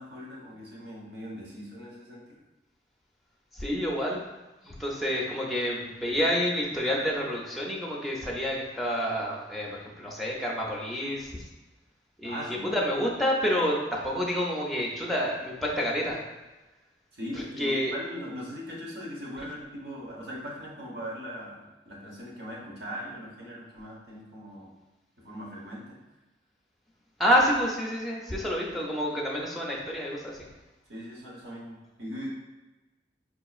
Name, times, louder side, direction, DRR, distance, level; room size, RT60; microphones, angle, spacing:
voice 1, 0.0-2.4 12.2-12.7 17.1-24.7 25.2-26.0 30.9-32.3, equal, 60° right, -4 dB, 1.0 m, -40 dB
voice 2, 3.5-4.2 4.6-11.3 12.2-12.4 12.7-16.2 17.6-17.9 27.2-30.4, equal, ahead, -3 dB, 0.5 m, -28 dB
4.8 x 2.9 x 2.4 m, 1.1 s
head